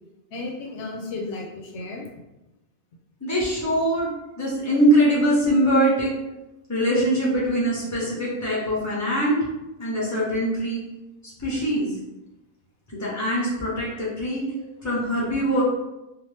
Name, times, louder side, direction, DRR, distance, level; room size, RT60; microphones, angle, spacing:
voice 1, 0.3-2.1 14.6-14.7, left 3 dB, 80° left, 1 dB, 0.9 m, -34 dB
voice 2, 3.2-4.1 4.4-6.1 6.7-9.4 9.8-10.8 11.4-11.9 12.9-14.4 14.8-15.6, right 1 dB, 15° left, -6 dB, 1.0 m, -22 dB
2.8 x 2.4 x 3.3 m, 0.97 s
omnidirectional pair, 1.2 m